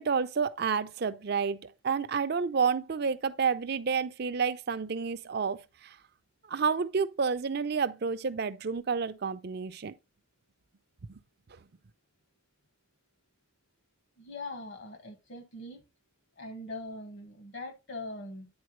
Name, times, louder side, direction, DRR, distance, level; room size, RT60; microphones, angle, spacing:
voice 1, 0.0-6.0 6.5-9.9 11.1-11.2, right 5 dB, 55° right, 0.5 m, -30 dB
voice 2, 14.2-15.8 16.4-18.5, left 2 dB, 65° left, 1.7 m, -41 dB
9.5 x 4.4 x 3.1 m
head